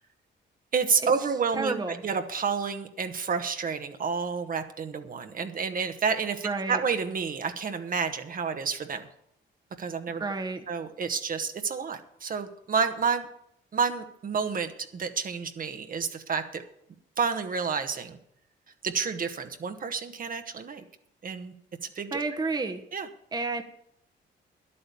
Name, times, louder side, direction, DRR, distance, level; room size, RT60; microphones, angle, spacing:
voice 1, 0.7-9.1 9.8-10.2 10.7-13.3 13.7-16.6 17.2-18.2 18.8-20.8 21.2-21.5 21.8-22.2 22.9-23.1, right 5 dB, 45° right, 7 dB, 1.1 m, -30 dB
voice 2, 1.5-2.0 6.4-6.8 10.2-10.6 22.1-22.8 23.3-23.6, right 3 dB, 20° right, 6 dB, 1.0 m, -30 dB
11.0 x 8.7 x 6.9 m, 0.74 s
cardioid pair, 90°, 20 cm